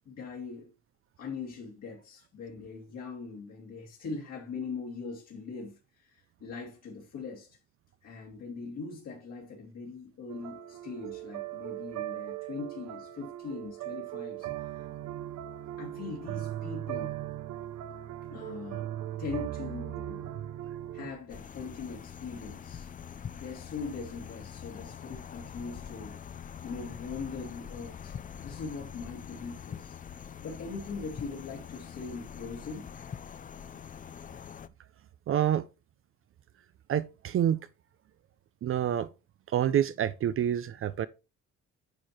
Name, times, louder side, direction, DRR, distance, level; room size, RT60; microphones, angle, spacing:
voice 1, 0.1-0.7 1.2-7.6 8.0-14.5 15.8-17.2 18.3-18.9 19.2-20.3 20.9-22.9 23.3-30.0 30.4-32.9, left 4 dB, 60° left, 2.5 m, -41 dB
sound 1, 10.3-21.1, right 13 dB, 75° right, 0.9 m, -38 dB
sound 2, 21.3-34.7, left 8 dB, 30° left, 0.5 m, -44 dB
voice 2, 35.3-35.6 36.9-37.6 38.6-39.1 39.5-41.1, right 10 dB, 50° right, 0.5 m, -27 dB
9.6 x 4.5 x 4.4 m
cardioid pair, 135°, 29 cm